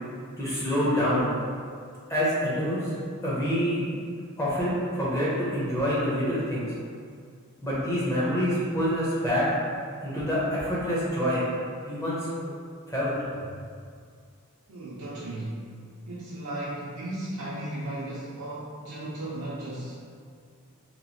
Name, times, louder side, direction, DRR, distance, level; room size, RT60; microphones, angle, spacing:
voice 1, 0.4-1.3 2.1-2.9 3.2-3.9 4.4-6.7 7.6-9.5 10.0-11.4 11.9-12.5 12.9-13.1, equal, 15° left, -8 dB, 0.6 m, -26 dB
voice 2, 14.7-15.6 16.1-19.9, right 1 dB, 80° right, -8 dB, 0.5 m, -35 dB
3.0 x 2.3 x 2.7 m, 2.2 s
head